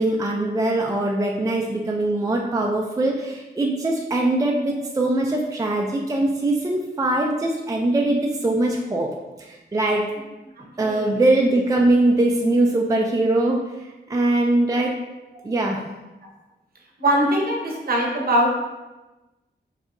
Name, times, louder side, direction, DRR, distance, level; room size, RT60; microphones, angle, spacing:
voice 1, 0.0-9.1 9.4-10.0 10.8-13.6 14.1-15.0 15.4-15.8, right 2 dB, 20° right, 0 dB, 0.3 m, -21 dB
voice 2, 10.6-11.1 17.0-18.5, right 1 dB, 55° right, 0 dB, 0.8 m, -22 dB
5.0 x 2.7 x 2.5 m, 1.1 s
wide cardioid pair, 105°, 18 cm